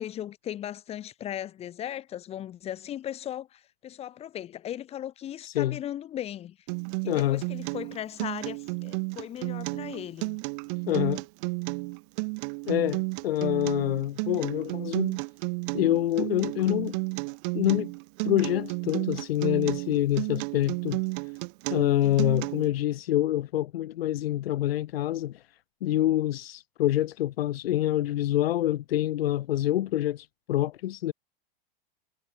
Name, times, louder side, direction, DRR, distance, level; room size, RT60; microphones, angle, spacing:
voice 1, 0.0-6.6 7.0-10.4 22.0-22.3, left 11 dB, 20° left, 0.7 m, -37 dB
voice 2, 5.4-5.8 7.1-7.4 10.9-11.2 12.7-15.2 15.7-17.0 17.5-17.9 18.2-21.0 21.7-25.4 25.8-31.1, left 13 dB, 85° left, 0.7 m, -26 dB
Acoustic guitar, 6.7-22.7, right 36 dB, 45° right, 1.7 m, -32 dB
hypercardioid pair, 130°, 29 cm